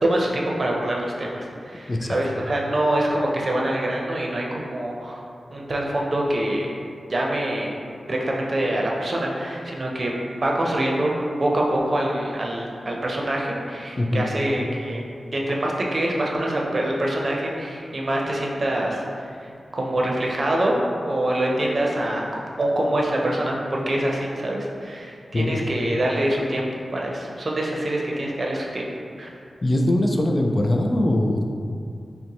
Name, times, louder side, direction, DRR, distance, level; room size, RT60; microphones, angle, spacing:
voice 1, 0.0-5.2 5.5-6.8 7.1-7.8 8.1-15.0 15.3-19.3 19.7-26.7 26.9-28.9 29.2-29.3, right 1 dB, 50° right, -2 dB, 0.6 m, -25 dB
voice 2, 1.9-2.2 14.0-14.2 25.3-25.6 29.6-31.6, left 1 dB, 35° left, 1 dB, 0.3 m, -21 dB
5.6 x 2.1 x 2.9 m, 2.4 s
cardioid pair, 65°, 0 cm